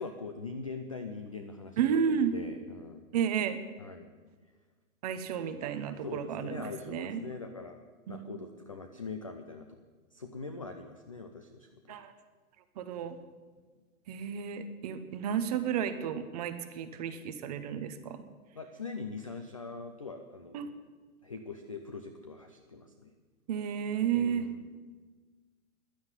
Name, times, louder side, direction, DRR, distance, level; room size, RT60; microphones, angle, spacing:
voice 1, 0.0-3.1 3.8-4.1 6.0-7.8 8.1-9.8 10.1-12.0 18.5-20.7 21.2-23.1 24.1-24.7, left 4 dB, 25° left, 6 dB, 0.3 m, -42 dB
voice 2, 1.8-2.3 3.1-3.6 5.0-7.2 8.1-8.2 11.9-12.1 12.8-13.2 14.1-18.2 20.5-20.7 23.5-24.4, right 8 dB, 30° right, 10 dB, 0.7 m, -32 dB
11.0 x 9.5 x 9.6 m, 1.4 s
hypercardioid pair, 155°, 43 cm